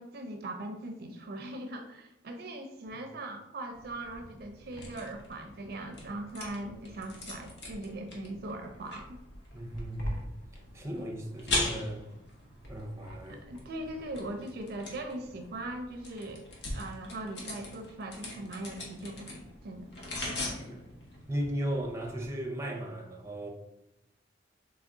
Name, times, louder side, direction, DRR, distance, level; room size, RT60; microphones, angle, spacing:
voice 1, 0.0-9.2 13.4-16.5 16.7-19.9, right 1 dB, 55° right, 0.4 m, -40 dB
sound 1, 3.7-22.3, left 2 dB, 65° left, 1.0 m, -41 dB
voice 2, 9.5-10.2 10.7-12.1 12.7-13.4 20.5-20.8 21.3-23.5, right 1 dB, 15° right, 0.6 m, -36 dB
3.5 x 3.3 x 3.6 m
head